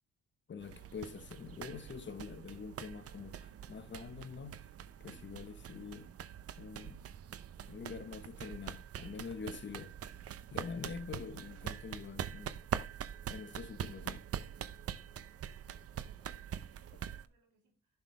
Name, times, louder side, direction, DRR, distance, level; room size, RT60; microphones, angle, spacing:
voice 1, 0.5-4.7 5.0-6.1 6.6-7.1 7.7-9.9 10.2-12.6 13.3-14.2, left 5 dB, 40° left, 1.1 m, -45 dB
sound 1, 0.6-17.3, right 9 dB, 50° right, 0.7 m, -44 dB
voice 2, 15.2-18.0, right 7 dB, 85° right, 3.2 m, -73 dB
11.0 x 6.0 x 3.3 m
cardioid pair, 90°, 30 cm